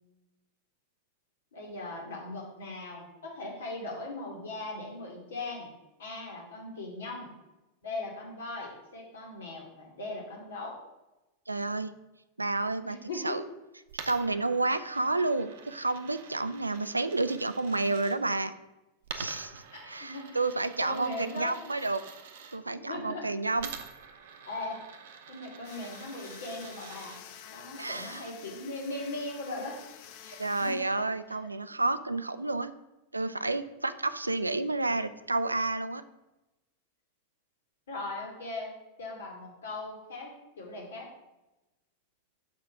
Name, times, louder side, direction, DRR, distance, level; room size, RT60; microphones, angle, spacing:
voice 1, 1.5-5.7 6.0-7.3 7.8-10.7 12.9-13.4 19.7-20.4 20.8-21.6 22.7-23.2 24.5-24.8 25.3-27.2 27.5-29.8 30.2-30.8 37.9-38.7 39.0-40.3 40.6-41.1, left 2 dB, 65° left, -1 dB, 2.1 m, -39 dB
voice 2, 11.5-11.9 12.4-13.0 13.2-13.4 14.0-18.5 19.1-22.0 22.5-23.7 27.8-28.3 30.4-32.7 33.1-36.0, right 2 dB, 80° right, 13 dB, 0.3 m, -30 dB
Coin (dropping), 13.9-18.2 19.0-22.6 23.6-27.2, right 7 dB, 55° right, 0.7 m, -46 dB
sound 1, 25.6-31.6, left 9 dB, 45° left, 0.6 m, -50 dB
6.3 x 4.4 x 5.8 m, 1.0 s
figure-of-eight pair, 90°, 0 cm